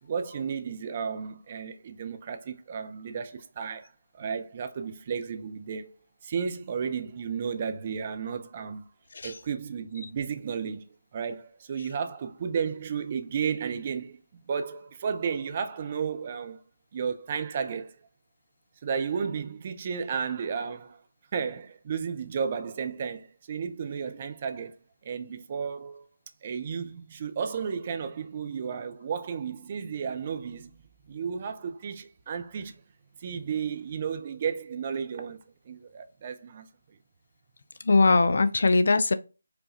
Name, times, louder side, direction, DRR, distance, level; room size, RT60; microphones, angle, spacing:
voice 1, 0.0-5.9 6.2-8.8 9.2-16.6 16.9-18.0 18.8-21.0 21.3-24.8 25.0-26.1 26.4-30.8 31.1-32.8 33.2-35.4 35.7-36.7, right 6 dB, 30° right, 0.4 m, -33 dB
voice 2, 37.9-39.1, left 3 dB, 45° left, 0.3 m, -21 dB
5.0 x 2.3 x 2.7 m
figure-of-eight pair, 155°, 0 cm